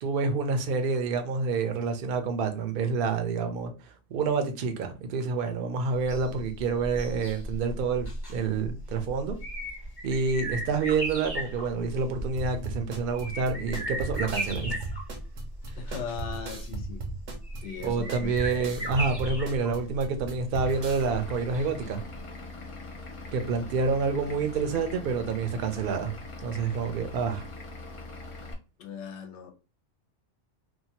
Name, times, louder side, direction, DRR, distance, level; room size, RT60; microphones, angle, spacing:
voice 1, 0.0-3.7 4.1-9.4 10.0-14.8 17.8-22.0 23.3-26.1 26.4-27.4, right 4 dB, 60° right, 0.6 m, -28 dB
sound 1, 6.0-21.9 22.2-22.3, right 1 dB, 20° left, 0.8 m, -37 dB
sound 2, 12.4-21.1, right 3 dB, 80° right, 0.9 m, -38 dB
voice 2, 15.8-17.0 17.6-18.3 18.6-18.7 28.8-29.5, left 6 dB, 75° left, 1.0 m, -38 dB
Vehicle / Engine, 20.5-28.5, left 3 dB, 40° left, 0.5 m, -42 dB
2.7 x 2.2 x 2.8 m
omnidirectional pair, 1.2 m